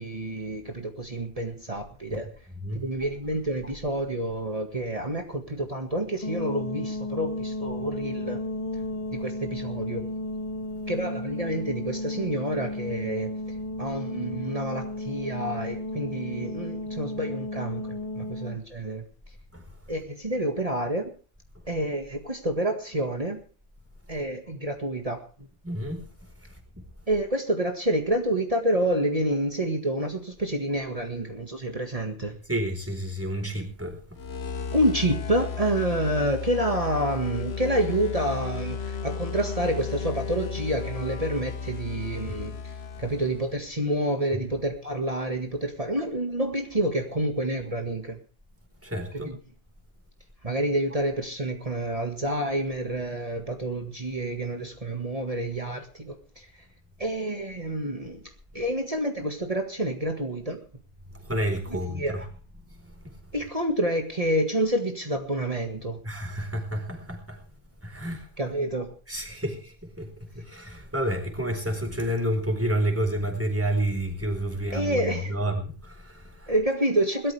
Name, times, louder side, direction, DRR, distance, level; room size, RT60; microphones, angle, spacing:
voice 1, 0.0-2.3 2.7-8.4 9.1-10.1 10.9-19.0 19.9-21.1 21.7-23.4 24.1-25.2 27.1-32.4 34.7-42.7 43.0-48.2 49.1-49.4 50.4-56.7 57.0-60.6 61.7-62.3 63.3-66.0 68.4-68.9 74.7-75.4 76.5-77.3, right 1 dB, 35° right, 2.0 m, -28 dB
sound 1, 6.2-18.6, left 1 dB, 35° left, 0.9 m, -33 dB
voice 2, 25.6-26.8 32.4-34.0 48.8-49.3 61.1-62.3 62.7-63.1 66.0-67.4 67.8-68.3 68.8-76.6, right 1 dB, 10° right, 4.4 m, -30 dB
sound 2, 34.1-43.6, left 6 dB, 80° left, 1.2 m, -34 dB
21.5 x 13.5 x 3.5 m
omnidirectional pair, 1.1 m